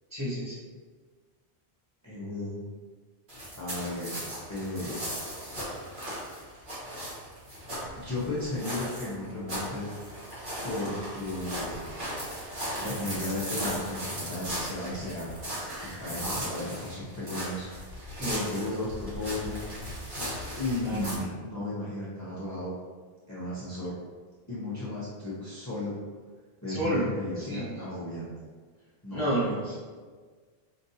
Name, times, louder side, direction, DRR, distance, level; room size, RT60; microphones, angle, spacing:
voice 1, 0.1-0.6 18.1-18.4 20.8-21.1 26.7-27.9 29.1-29.8, right 1 dB, 30° right, -10 dB, 1.2 m, -31 dB
voice 2, 2.0-2.6 3.6-5.0 7.9-9.9 10.6-11.8 12.7-15.3 15.8-17.7 18.2-19.6 20.5-22.8 23.3-23.9 24.5-25.9 26.6-28.3 29.0-29.5, left 2 dB, 20° left, -9 dB, 0.7 m, -34 dB
sound 1, 3.3-21.1, equal, 55° right, 1.3 m, -37 dB
4.7 x 2.5 x 2.7 m, 1.5 s
omnidirectional pair, 1.1 m